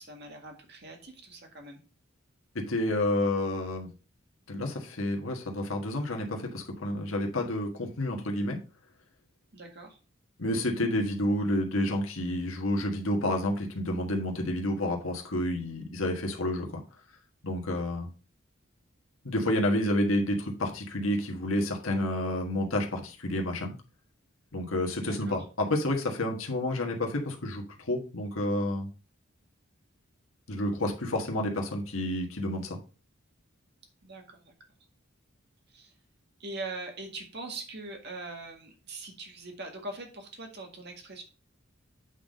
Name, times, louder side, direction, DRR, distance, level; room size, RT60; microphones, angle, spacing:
voice 1, 0.0-1.8 9.5-10.0 25.0-25.5 34.0-34.5 35.7-35.9 36.4-41.2, right 2 dB, 55° right, 2 dB, 1.9 m, -42 dB
voice 2, 2.5-3.9 4.5-8.6 10.4-16.8 17.4-18.1 19.2-23.7 24.5-28.9 30.5-32.8, left 1 dB, 85° left, 1 dB, 1.5 m, -29 dB
8.3 x 4.0 x 5.3 m, 0.35 s
head